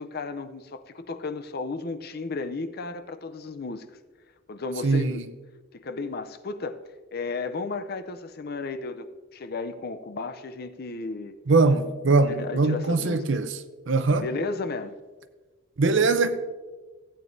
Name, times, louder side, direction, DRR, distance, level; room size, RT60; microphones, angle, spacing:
voice 1, 0.0-3.8 4.5-5.3 5.7-6.8 7.1-11.3 12.3-13.2 14.2-15.0, left 3 dB, 50° left, 0.5 m, -34 dB
voice 2, 4.8-5.2 11.5-13.6 13.9-14.3 15.8-16.5, right 3 dB, 60° right, 0.6 m, -22 dB
15.0 x 8.9 x 2.6 m
head